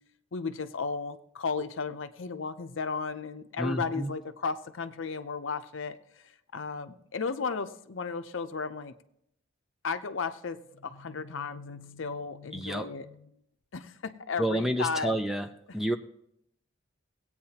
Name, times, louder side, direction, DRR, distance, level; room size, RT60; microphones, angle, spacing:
voice 1, 0.3-6.0 6.2-8.9 9.8-13.3 13.7-15.2, left 5 dB, 65° left, 9 dB, 0.6 m, -34 dB
voice 2, 3.6-4.1 12.5-12.9 14.4-15.5 15.7-16.0, right 1 dB, ahead, 7 dB, 0.4 m, -29 dB
18.5 x 8.7 x 2.9 m, 0.74 s
head